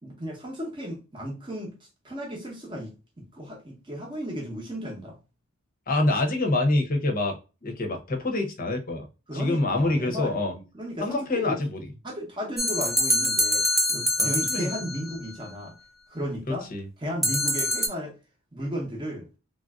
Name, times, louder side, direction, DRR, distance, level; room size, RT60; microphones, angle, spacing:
voice 1, 0.0-1.7 2.0-5.2 9.3-11.6 12.0-15.7 16.1-16.7 17.0-18.1 18.5-19.3, equal, 20° right, 0.8 m, -34 dB
voice 2, 5.9-7.4 7.6-9.1 9.3-10.5 11.0-11.7 14.2-14.7 16.5-16.8, left 2 dB, 40° left, 0.7 m, -26 dB
sound 1, 12.6-15.1 17.2-17.9, left 1 dB, ahead, 0.3 m, -24 dB
3.3 x 2.5 x 2.3 m
head